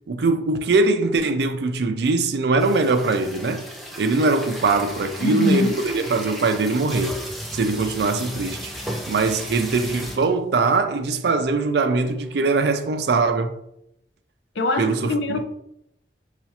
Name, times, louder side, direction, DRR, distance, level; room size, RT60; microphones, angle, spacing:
voice 1, 0.1-3.7 4.0-7.2 7.5-8.7 9.1-13.5 14.8-15.1, right 3 dB, 65° right, 0.4 m, -21 dB
sound 1, 2.6-10.4 11.0-11.1 11.3-11.5 12.0-13.2, equal, ahead, 0.4 m, -35 dB
voice 2, 5.2-5.8 14.5-15.4, left 2 dB, 75° left, 0.5 m, -23 dB
5.7 x 2.4 x 2.7 m
head